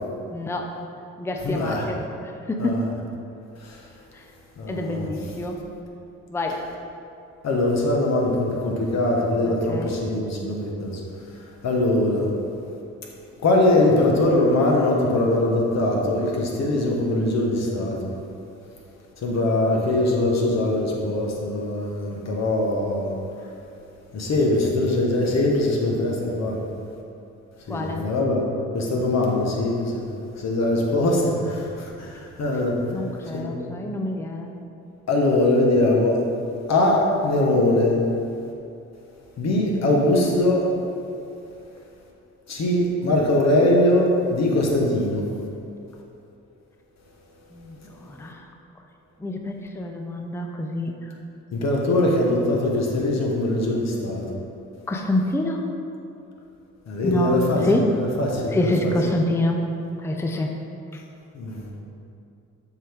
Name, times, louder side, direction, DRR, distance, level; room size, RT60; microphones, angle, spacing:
voice 1, 0.3-0.7 1.2-2.0 2.5-2.8 4.1-4.2 4.7-5.6 6.3-6.6 9.7-10.0 27.7-28.0 32.9-34.5 47.5-48.5 49.2-50.9 54.9-55.6 57.0-58.0 58.5-59.7 60.0-60.5 60.9-61.0, left 1 dB, 10° left, 3 dB, 0.5 m, -26 dB
voice 2, 1.4-1.9 2.6-2.8 3.6-3.8 4.6-5.1 7.4-11.0 11.6-12.3 13.4-18.1 19.2-23.1 24.1-26.6 27.7-28.4 28.7-30.1 30.4-32.8 33.3-33.5 35.1-36.2 36.7-38.0 39.4-40.7 42.5-45.3 51.5-54.2 56.9-58.9 61.3-61.7, left 1 dB, 60° left, -1 dB, 1.3 m, -22 dB
7.3 x 4.9 x 3.6 m, 2.6 s
cardioid pair, 90°, 30 cm